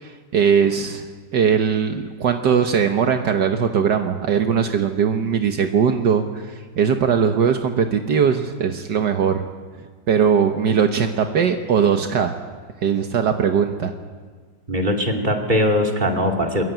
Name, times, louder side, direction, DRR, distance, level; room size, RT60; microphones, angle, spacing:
voice 1, 0.0-1.1 1.3-9.4 10.1-12.3 12.8-13.9, right 7 dB, 70° right, 6 dB, 1.7 m, -20 dB
voice 2, 14.7-16.6, equal, 25° right, 2 dB, 2.8 m, -20 dB
22.5 x 22.5 x 9.2 m, 1.5 s
omnidirectional pair, 1.9 m